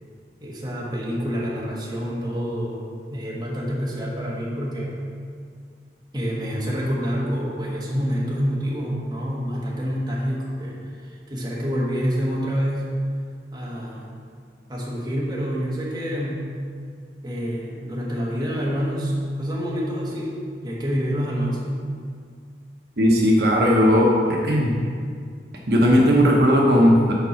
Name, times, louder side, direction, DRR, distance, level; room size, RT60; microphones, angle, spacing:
voice 1, 0.4-2.8 3.1-4.9 6.1-13.0 13.5-14.1 14.7-16.5 17.2-20.3 20.6-21.9, equal, 25° right, -5 dB, 1.3 m, -27 dB
voice 2, 23.0-24.1 24.4-24.7 25.7-27.1, equal, 65° right, -2 dB, 1.0 m, -16 dB
6.8 x 4.6 x 5.8 m, 2.1 s
head